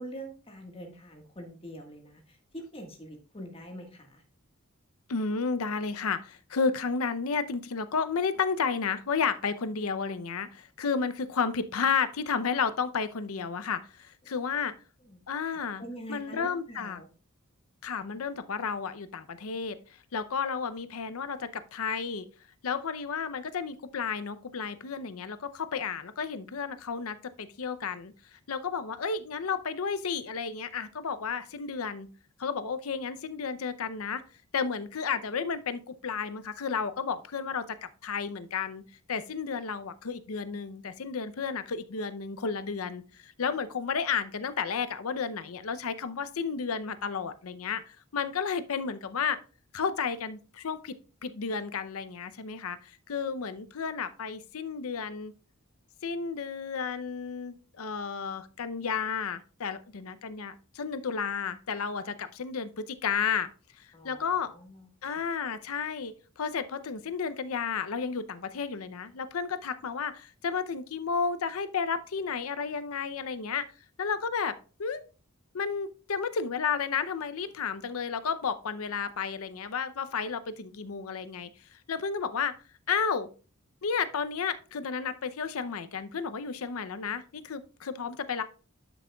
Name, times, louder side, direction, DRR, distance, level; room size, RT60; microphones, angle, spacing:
voice 1, 0.0-4.2 14.2-14.5 15.1-15.2 15.4-17.1 63.9-65.3, equal, 25° left, 2 dB, 1.5 m, -45 dB
voice 2, 5.1-14.7 15.3-15.8 16.1-17.0 17.8-19.8 20.1-22.3 22.6-32.1 32.4-34.2 34.5-37.8 38.0-38.8 39.1-49.4 49.7-51.0 51.2-55.3 56.0-63.5 63.8-64.5 65.0-73.7 74.0-75.0 75.5-82.5 82.9-83.3 83.8-88.4, left 5 dB, 75° left, 13 dB, 0.6 m, -32 dB
11.0 x 6.1 x 2.3 m, 0.37 s
head